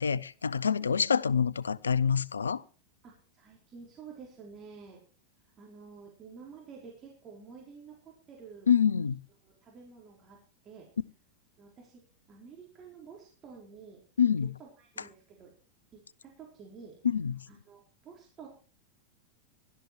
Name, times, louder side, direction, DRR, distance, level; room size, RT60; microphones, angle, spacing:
voice 1, 0.0-2.6 8.7-9.2 14.2-14.5 17.0-17.4, left 7 dB, 70° left, 0.6 m, -26 dB
voice 2, 3.0-5.0 5.6-8.7 9.4-10.4 10.6-10.9 11.6-12.0 12.3-14.0 14.6-15.5 15.9-17.0 17.5-18.5, right 5 dB, 25° right, 4.3 m, -50 dB
16.5 x 12.5 x 4.6 m
figure-of-eight pair, 90°, 0 cm